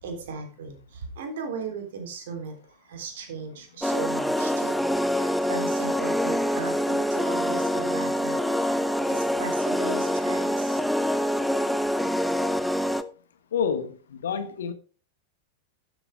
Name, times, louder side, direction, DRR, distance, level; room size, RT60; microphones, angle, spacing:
voice 1, 0.0-2.6 2.9-4.8 5.0-10.8, right 4 dB, 55° right, 3.6 m, -37 dB
sound 1, 3.8-13.0, equal, ahead, 0.8 m, -25 dB
voice 2, 13.5-14.7, left 7 dB, 65° left, 1.4 m, -28 dB
12.5 x 8.7 x 3.6 m
figure-of-eight pair, 90°, 0 cm